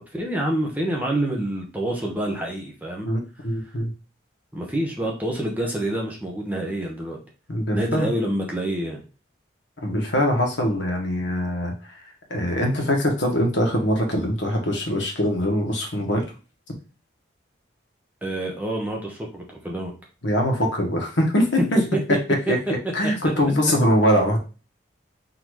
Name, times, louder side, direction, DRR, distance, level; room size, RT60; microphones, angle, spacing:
voice 1, 0.1-3.1 4.5-7.2 7.7-9.0 18.2-19.9 21.9-22.2 22.5-22.6 23.0-23.1, right 1 dB, 10° right, -1 dB, 0.8 m, -27 dB
voice 2, 3.0-3.9 7.5-8.1 9.8-11.7 12.3-16.2 20.2-21.8 22.5-22.6 22.9-24.4, equal, 70° left, 1 dB, 1.3 m, -22 dB
3.9 x 2.8 x 4.7 m, 0.34 s
head